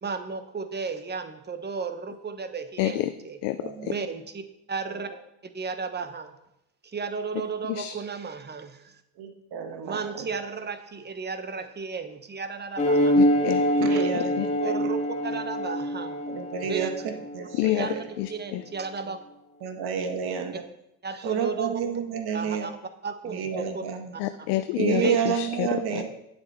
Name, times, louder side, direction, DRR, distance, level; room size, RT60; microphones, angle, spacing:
voice 1, 0.0-3.4 3.8-4.4 4.7-5.1 5.5-6.3 6.8-9.0 9.8-13.3 13.8-14.2 14.6-16.2 16.6-16.9 17.6-18.0 18.3-19.2 21.0-21.8 22.3-22.7 23.0-23.9 25.0-25.2, right 5 dB, 20° right, 9 dB, 1.2 m, -34 dB
voice 2, 2.8-3.1 3.4-3.9 7.3-7.9 13.1-13.9 14.1-14.5 17.5-18.6 24.2-26.0, left 16 dB, 65° left, 9 dB, 0.7 m, -29 dB
voice 3, 3.6-4.0 4.9-5.0 9.2-10.3 13.8-14.3 14.6-14.9 16.3-18.1 19.1-19.2 19.6-20.6 21.2-22.7 23.3-24.1 24.8-26.1, right 7 dB, 55° right, 5 dB, 1.8 m, -30 dB
sound 1, 12.8-17.7, equal, 15° left, 1.7 m, -25 dB
9.8 x 7.9 x 4.4 m, 0.83 s
hypercardioid pair, 80°, 45 cm